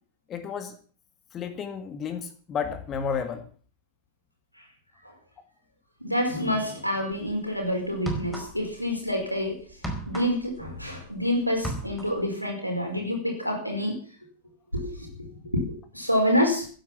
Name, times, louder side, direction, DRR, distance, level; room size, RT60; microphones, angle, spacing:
voice 1, 0.3-0.7 1.3-3.4, left 6 dB, 30° left, 9 dB, 1.9 m, -32 dB
voice 2, 6.0-9.6 10.1-14.0 14.7-15.3 15.5-15.6 15.9-16.7, equal, 90° left, 3 dB, 5.0 m, -27 dB
sound 1, 7.1-7.3 7.9-8.8 9.1-11.2 11.5-12.3, right 1 dB, 5° left, 4.7 m, -35 dB
16.0 x 10.0 x 7.3 m, 0.43 s
figure-of-eight pair, 90°, 0 cm